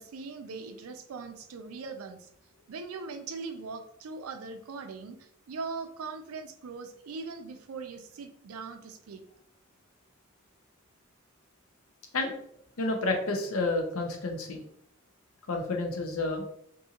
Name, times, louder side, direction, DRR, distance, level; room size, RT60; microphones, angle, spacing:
voice 1, 0.0-2.3 2.7-9.2, right 4 dB, 90° right, 8 dB, 0.4 m, -40 dB
voice 2, 12.8-14.6 15.5-16.5, left 2 dB, 75° left, 3 dB, 0.6 m, -30 dB
2.6 x 2.4 x 2.8 m, 0.68 s
head